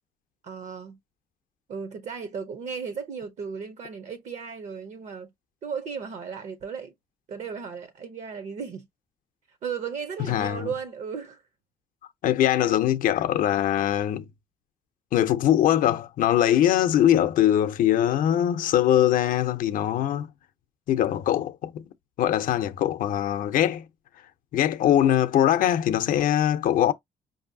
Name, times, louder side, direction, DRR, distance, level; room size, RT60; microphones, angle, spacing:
voice 1, 0.4-1.0 1.7-5.3 5.6-6.9 7.3-8.9 9.5-11.4, right 6 dB, 50° right, 0.6 m, -35 dB
voice 2, 10.3-10.7 12.2-14.3 15.1-20.3 20.9-21.9 22.2-23.9 24.5-26.9, left 11 dB, 65° left, 0.6 m, -22 dB
5.3 x 2.6 x 2.6 m
cardioid pair, 175°, 15 cm